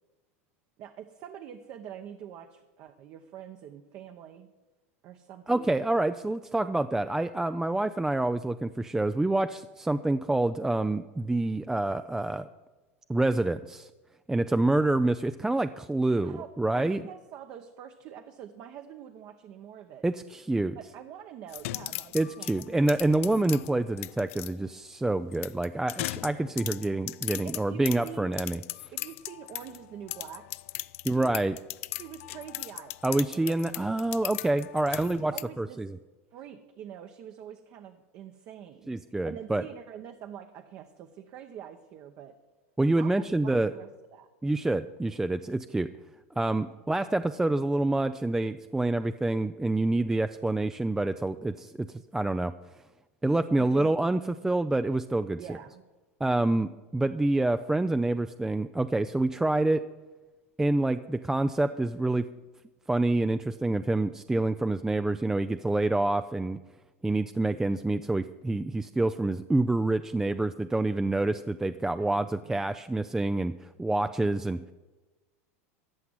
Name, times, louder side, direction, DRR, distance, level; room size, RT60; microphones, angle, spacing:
voice 1, 0.8-4.5 5.0-5.8 16.2-20.0 20.7-22.8 27.4-28.3 28.9-30.4 31.1-31.4 32.0-33.5 34.8-35.8 36.3-38.9 39.2-42.3 43.0-43.1 43.4-44.3 46.7-46.8 53.4-53.9 55.4-55.8 72.0-72.7, right 9 dB, 45° right, 6 dB, 0.9 m, -45 dB
voice 2, 5.5-12.5 13.1-13.9 14.3-17.0 20.0-20.8 22.1-28.6 31.0-31.6 33.0-35.9 38.9-39.6 42.8-43.7 44.4-45.9 46.4-51.9 52.1-52.5 53.2-55.6 56.2-59.8 60.6-62.3 62.9-66.6 67.0-74.6, right 2 dB, 5° right, 10 dB, 0.4 m, -27 dB
sound 1, 21.5-24.5 25.3-29.8 30.1-35.4, left 17 dB, 70° left, 0.4 m, -38 dB
14.0 x 5.9 x 9.8 m, 1.2 s
hypercardioid pair, 115°, 8 cm